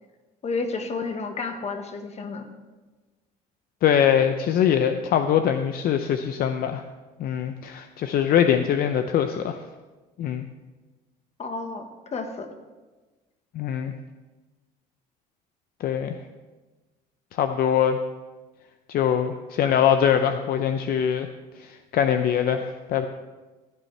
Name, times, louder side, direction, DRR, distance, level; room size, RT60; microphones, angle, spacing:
voice 1, 0.4-2.5 11.4-12.5, left 4 dB, 40° left, 6 dB, 1.3 m, -31 dB
voice 2, 3.8-6.8 7.2-9.6 10.2-10.5 13.5-13.9 15.8-16.2 17.3-18.0 18.9-21.3 21.6-23.1, left 9 dB, 65° left, 8 dB, 0.6 m, -23 dB
15.0 x 9.1 x 3.3 m, 1.2 s
cardioid pair, 110°, 17 cm